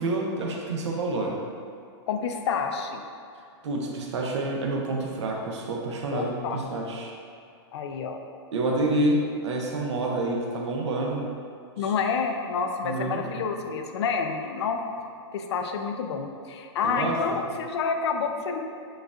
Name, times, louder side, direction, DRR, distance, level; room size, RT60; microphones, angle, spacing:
voice 1, 0.0-1.4 3.6-7.1 8.5-11.3 12.8-13.4 16.8-17.4, right 2 dB, 80° right, 0 dB, 0.7 m, -28 dB
voice 2, 2.1-3.0 6.1-6.6 7.7-8.2 8.9-9.1 11.8-14.8 15.3-18.6, left 5 dB, 70° left, 5 dB, 0.4 m, -28 dB
6.2 x 2.4 x 2.4 m, 2.5 s
hypercardioid pair, 155°, 14 cm